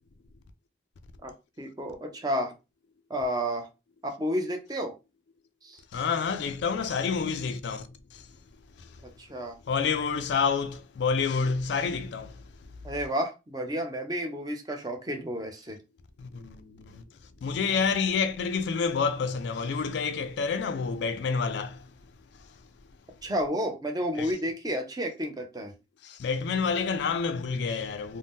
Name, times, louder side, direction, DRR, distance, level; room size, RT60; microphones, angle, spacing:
voice 1, 1.2-2.5 3.1-3.7 4.0-4.9 5.6-5.8 9.2-9.6 12.8-15.8 23.2-25.7, equal, 20° right, 0.5 m, -31 dB
voice 2, 5.9-8.3 8.8-9.0 9.6-12.5 16.2-17.0 17.4-21.9 22.4-22.6 24.2-24.3 26.0-28.2, left 5 dB, 65° left, 0.3 m, -29 dB
2.6 x 2.1 x 3.5 m
head